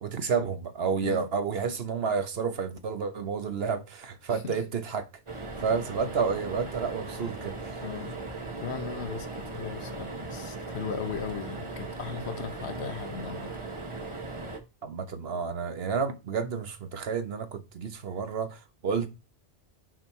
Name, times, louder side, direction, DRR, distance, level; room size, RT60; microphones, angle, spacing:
voice 1, 0.0-5.1 5.6-7.8 14.8-19.1, right 5 dB, 60° right, 1.1 m, -30 dB
sound 1, 5.3-14.6, right 3 dB, 30° right, 1.0 m, -38 dB
voice 2, 7.8-8.1 8.6-13.5, left 7 dB, 70° left, 1.2 m, -37 dB
6.3 x 4.4 x 4.6 m
omnidirectional pair, 1.2 m